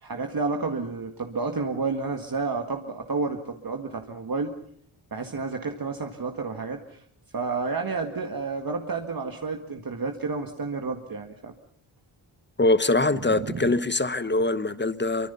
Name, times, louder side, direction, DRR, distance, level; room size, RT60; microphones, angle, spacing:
voice 1, 0.0-4.5 5.1-7.0 7.3-11.5 13.4-13.7, right 4 dB, 45° right, 1.9 m, -30 dB
voice 2, 12.6-15.3, left 2 dB, 20° left, 1.0 m, -23 dB
27.0 x 24.0 x 5.6 m
wide cardioid pair, 130°, 48 cm